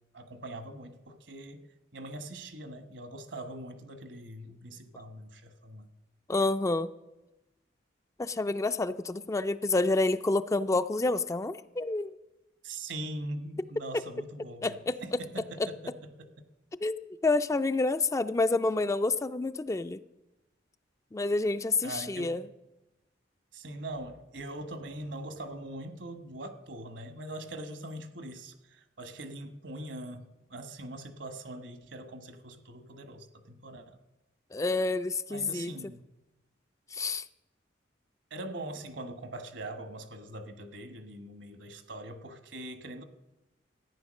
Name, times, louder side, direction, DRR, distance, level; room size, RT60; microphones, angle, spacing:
voice 1, 0.1-5.9 12.6-16.4 21.8-22.3 23.5-30.2 30.5-34.0 35.3-36.0 38.3-43.0, right 1 dB, 75° right, 9 dB, 1.3 m, -42 dB
voice 2, 6.3-6.9 8.2-12.1 14.6-15.0 15.6-15.7 16.8-20.0 21.1-22.4 34.5-35.7 36.9-37.2, left 2 dB, 15° left, 11 dB, 0.3 m, -28 dB
14.0 x 9.5 x 6.3 m, 1.0 s
head